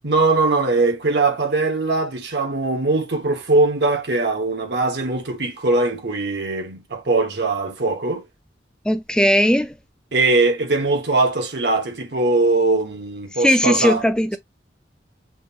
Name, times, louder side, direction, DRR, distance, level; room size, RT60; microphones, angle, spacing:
voice 1, 0.0-8.3 10.1-14.0, right 3 dB, 65° right, 1.3 m, -21 dB
voice 2, 8.9-9.7 13.4-14.4, equal, 5° left, 0.5 m, -18 dB
6.1 x 2.5 x 2.9 m
head